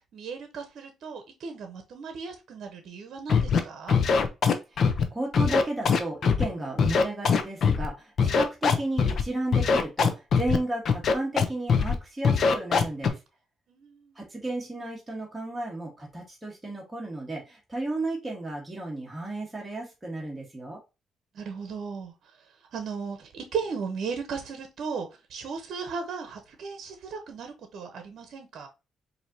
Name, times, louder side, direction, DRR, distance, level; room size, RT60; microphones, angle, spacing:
voice 1, 0.1-4.0 13.7-14.1 21.3-22.1 22.7-28.7, right 5 dB, 65° right, 0.8 m, -36 dB
Scratching (performance technique), 3.3-3.6 3.9-5.0 5.3-6.4 6.8-7.9 8.2-9.2 9.5-10.6 10.9-11.4 11.7-12.0 12.2-13.1, left 5 dB, 55° left, 0.6 m, -22 dB
voice 2, 4.7-13.2 14.1-20.8, right 2 dB, 10° right, 1.4 m, -33 dB
4.5 x 2.8 x 2.7 m
cardioid pair, 90°, 0 cm